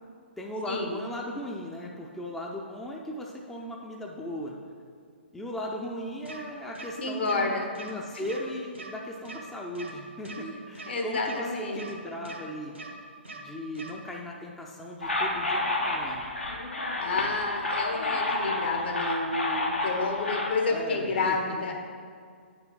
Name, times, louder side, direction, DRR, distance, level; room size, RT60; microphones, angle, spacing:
voice 1, 0.4-4.6 5.3-12.8 13.3-16.3 20.7-21.5, equal, 5° left, -1 dB, 0.5 m, -37 dB
sound 1, 6.3-6.4 6.8-6.9 7.3-7.4 7.8-7.9 8.2-8.4 8.8-8.9 9.3-9.4 9.8-9.9 10.3-10.4 10.8-10.9 11.3-11.4 11.8-11.9 12.3-12.4 12.8-12.9 13.3-13.4 13.8-13.9, right 3 dB, 80° right, 1.3 m, -42 dB
voice 2, 7.0-7.7 8.1-8.2 10.4-10.5 10.9-11.8 17.0-21.8, left 3 dB, 60° left, 2 dB, 1.3 m, -30 dB
sound 2, 15.0-20.5, left 2 dB, 80° left, 1.3 m, -30 dB
8.9 x 6.0 x 3.8 m, 2.1 s
figure-of-eight pair, 125°, 6 cm